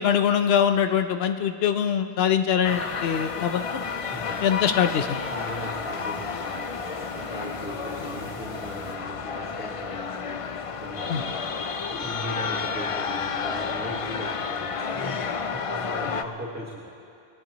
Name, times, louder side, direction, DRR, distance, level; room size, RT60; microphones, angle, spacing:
voice 1, 0.0-3.6 4.4-5.2 11.1-11.2, left 8 dB, 70° left, 7 dB, 1.0 m, -23 dB
sound 1, 2.6-16.2, left 5 dB, 45° left, 0.5 m, -31 dB
sound 2, 2.6-8.9, equal, 70° right, 3.7 m, -45 dB
voice 2, 4.1-4.4 5.3-16.9, equal, 10° right, -5 dB, 1.5 m, -38 dB
23.5 x 19.0 x 3.1 m, 2.5 s
omnidirectional pair, 1.1 m